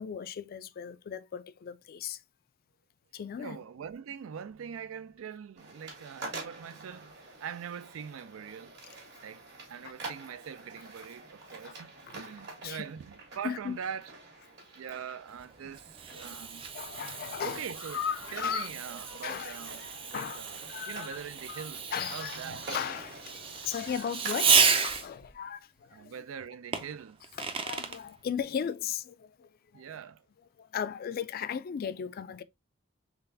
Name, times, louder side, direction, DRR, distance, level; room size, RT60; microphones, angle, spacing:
voice 1, 0.0-2.2 3.1-3.6 9.8-9.9 11.6-11.7 12.1-12.9 13.4-13.8 16.1-16.4 16.7-17.7 18.3-18.7 19.2-19.6 20.1-20.4 20.7-21.2 21.5-26.1 26.7-26.8 27.4-29.9 30.6-32.4, left 8 dB, 45° left, 0.3 m, -37 dB
voice 2, 3.4-8.8 9.2-11.9 12.1-14.1 14.7-16.7 17.4-18.0 18.3-19.8 20.1-20.6 20.9-21.8 22.1-22.6 25.9-27.2 29.7-30.2, right 7 dB, 85° right, 0.4 m, -42 dB
sound 1, 5.6-24.8, right 3 dB, 55° right, 1.7 m, -47 dB
Fireworks, 15.4-25.3 26.7-28.0, right 6 dB, 25° right, 0.4 m, -32 dB
sound 2, 16.1-16.4 16.8-20.2 20.5-20.6 21.0-21.1, left 6 dB, 90° left, 1.0 m, -38 dB
3.9 x 3.3 x 2.6 m
head